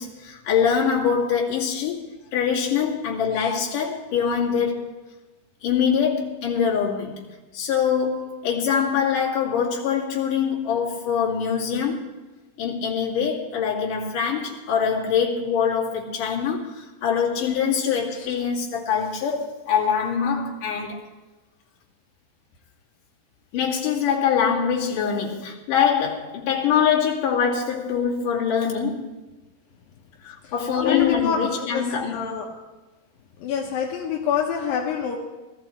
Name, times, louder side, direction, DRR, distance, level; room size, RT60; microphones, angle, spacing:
voice 1, 0.0-4.9 5.6-7.2 7.5-12.1 12.6-21.0 23.5-29.1 30.2-32.4, left 7 dB, 55° left, -4 dB, 3.7 m, -24 dB
voice 2, 30.4-31.4 31.7-32.5 33.4-35.2, left 7 dB, 70° left, -1 dB, 2.4 m, -28 dB
19.0 x 14.0 x 4.5 m, 1.1 s
omnidirectional pair, 5.0 m